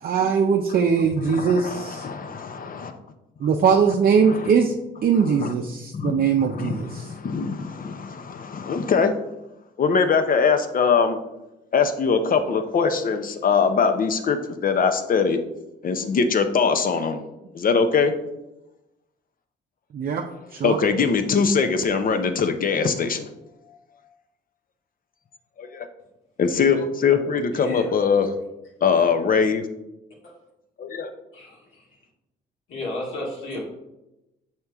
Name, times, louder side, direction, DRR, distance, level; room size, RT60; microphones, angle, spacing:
voice 1, 0.0-2.1 3.4-4.7 5.0-7.1 19.9-20.2 20.5-20.8, right 6 dB, 50° right, 2 dB, 0.5 m, -21 dB
voice 2, 1.3-2.9 4.3-4.4 5.3-5.4 5.9-6.1 6.4-9.1 9.8-11.2 11.7-15.4 15.8-17.2 17.5-18.1 20.6-23.3 25.6-25.9 26.4-28.3 28.8-29.6 30.8-31.1, left 5 dB, 45° left, 8 dB, 0.7 m, -22 dB
voice 3, 27.5-27.9 31.3-31.9 32.7-33.6, left 1 dB, 75° left, -3 dB, 2.3 m, -33 dB
6.5 x 4.4 x 3.5 m, 0.93 s
cardioid pair, 90°, 20 cm